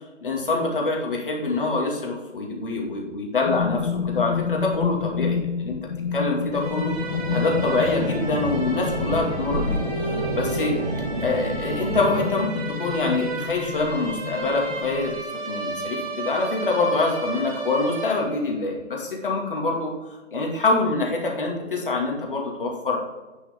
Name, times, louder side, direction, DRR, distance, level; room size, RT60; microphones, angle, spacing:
voice 1, 0.2-10.7 11.2-15.1 15.5-23.0, left 3 dB, 45° left, 0 dB, 2.3 m, -25 dB
sound 1, 3.4-15.2, left 6 dB, 85° left, 0.7 m, -30 dB
sound 2, 6.5-18.6, right 2 dB, 30° right, 2.0 m, -33 dB
sound 3, 6.8-12.3, right 2 dB, 50° right, 1.4 m, -30 dB
9.5 x 6.7 x 3.6 m, 1.2 s
hypercardioid pair, 175°, 36 cm